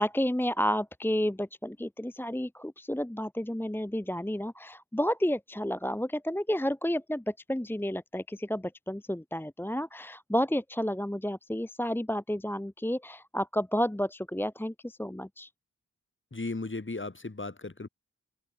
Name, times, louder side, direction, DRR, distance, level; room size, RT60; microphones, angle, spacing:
voice 1, 0.0-15.5, equal, 5° left, 1.1 m, -31 dB
voice 2, 16.3-17.9, left 3 dB, 40° left, 6.8 m, -36 dB
open air
wide cardioid pair, 75°, 31 cm